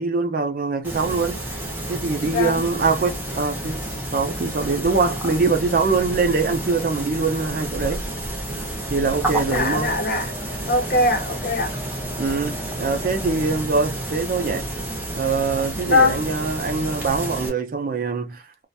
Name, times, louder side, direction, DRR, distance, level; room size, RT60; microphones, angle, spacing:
voice 1, 0.0-1.4 1.9-3.8 4.1-8.0 8.9-9.9 12.2-14.6 15.2-18.7, right 4 dB, 50° right, 0.5 m, -23 dB
sound 1, 0.8-17.5, right 1 dB, 10° right, 0.7 m, -30 dB
voice 2, 2.3-2.6 9.5-10.4 10.7-11.7 15.9-16.2, left 2 dB, 55° left, 0.7 m, -21 dB
Bowed string instrument, 9.1-14.8, equal, 15° left, 1.0 m, -39 dB
2.4 x 2.1 x 2.6 m
head